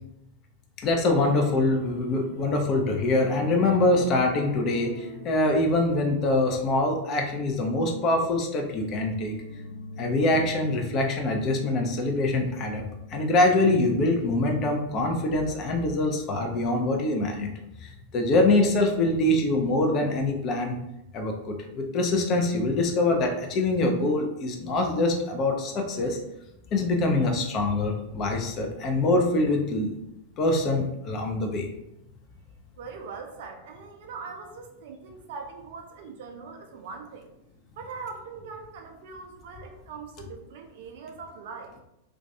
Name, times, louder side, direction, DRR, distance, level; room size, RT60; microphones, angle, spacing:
voice 1, 0.8-9.3 10.0-17.5 17.8-20.8 21.1-26.2 26.7-29.9 30.4-31.7, left 2 dB, 35° left, 3 dB, 0.4 m, -24 dB
sound 1, 1.0-14.3 14.6-14.8 15.2-15.3, left 3 dB, 60° left, 0.8 m, -44 dB
voice 2, 32.8-37.3 37.8-41.8, right 5 dB, 55° right, 4 dB, 0.4 m, -41 dB
2.2 x 2.2 x 2.7 m, 0.87 s
figure-of-eight pair, 90°, 0 cm